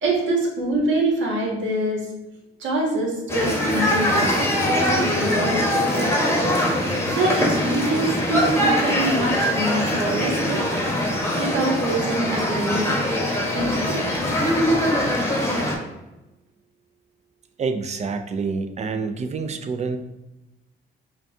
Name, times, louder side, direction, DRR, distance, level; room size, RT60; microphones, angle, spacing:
voice 1, 0.0-2.1 2.6-6.4 7.1-10.6 11.4-12.8 13.5-14.0, right 2 dB, 75° right, -1 dB, 1.2 m, -25 dB
sound 1, 3.3-15.7, left 1 dB, 15° left, 0.9 m, -22 dB
voice 2, 17.6-20.0, right 4 dB, 35° right, 7 dB, 0.4 m, -27 dB
5.1 x 2.3 x 2.7 m, 0.97 s
cardioid pair, 90°, 20 cm